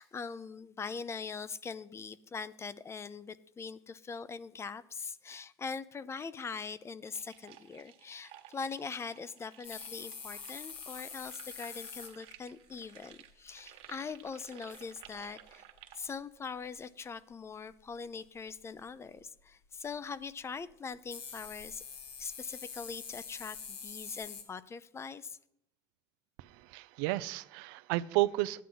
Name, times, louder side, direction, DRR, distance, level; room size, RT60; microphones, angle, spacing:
voice 1, 0.0-15.6 16.0-21.8 22.2-25.4, left 5 dB, 25° left, 0.6 m, -42 dB
sound 1, 7.0-16.2, right 12 dB, 60° right, 1.4 m, -55 dB
sound 2, 9.6-12.1 14.3-14.4 14.7-15.2 16.4-16.5 17.9-18.0 21.1-24.4, left 6 dB, 65° left, 2.1 m, -45 dB
voice 2, 26.4-28.6, right 18 dB, 85° right, 0.5 m, -32 dB
13.0 x 9.4 x 3.9 m
supercardioid pair, 105°, 11 cm